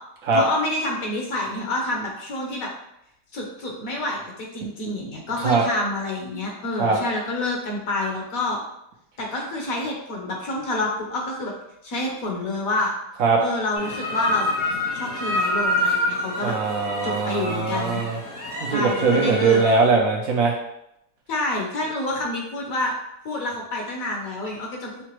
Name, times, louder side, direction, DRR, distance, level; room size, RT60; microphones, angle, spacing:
voice 1, 0.3-2.7 3.3-8.6 9.2-11.5 11.8-12.9 13.4-14.5 14.9-16.5 17.0-18.0 18.7-19.6 21.3-22.9 23.2-25.0, left 2 dB, 60° left, -1 dB, 1.2 m, -28 dB
sound 1, 13.7-19.9, left 1 dB, 80° left, 2.3 m, -27 dB
voice 2, 16.4-18.1 18.6-20.5, right 4 dB, 65° right, -1 dB, 0.9 m, -21 dB
5.7 x 2.2 x 3.0 m, 0.80 s
omnidirectional pair, 1.7 m